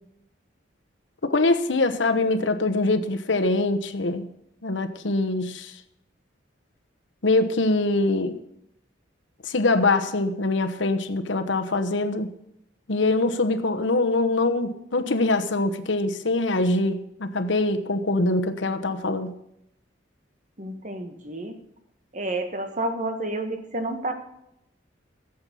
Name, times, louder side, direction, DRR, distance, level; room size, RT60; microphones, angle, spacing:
voice 1, 1.2-4.3 4.6-5.7 7.2-8.4 9.4-12.3 12.9-19.3, left 2 dB, 75° left, 8 dB, 1.1 m, -23 dB
voice 2, 20.6-21.5 22.1-24.1, right 2 dB, 40° right, 6 dB, 1.5 m, -30 dB
15.0 x 7.9 x 7.0 m, 0.79 s
head